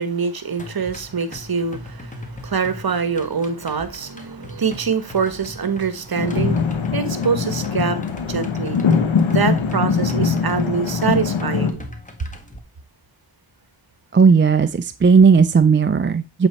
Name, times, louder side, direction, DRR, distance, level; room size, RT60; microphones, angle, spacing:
voice 1, 0.0-8.0 8.3-8.8 9.3-11.8, right 5 dB, 50° right, 1.2 m, -24 dB
sound 1, 0.6-12.6, left 1 dB, 15° left, 1.7 m, -39 dB
sound 2, 6.2-11.7, left 5 dB, 75° left, 1.3 m, -21 dB
voice 2, 14.1-16.5, right 5 dB, 25° right, 0.5 m, -15 dB
7.8 x 4.1 x 4.3 m
cardioid pair, 50°, 47 cm